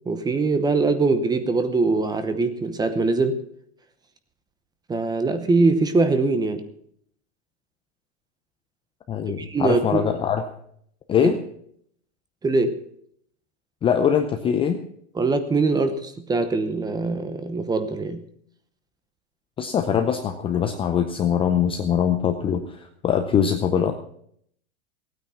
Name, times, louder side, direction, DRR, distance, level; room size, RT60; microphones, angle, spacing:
voice 1, 0.1-3.4 4.9-6.6 9.2-10.1 11.2-11.3 12.4-12.8 15.1-18.2, right 3 dB, 10° right, 10 dB, 0.9 m, -22 dB
voice 2, 9.1-10.4 11.1-11.4 13.8-14.8 19.6-23.9, left 8 dB, 15° left, 5 dB, 0.6 m, -22 dB
16.0 x 9.2 x 5.8 m, 0.66 s
hypercardioid pair, 140°, 38 cm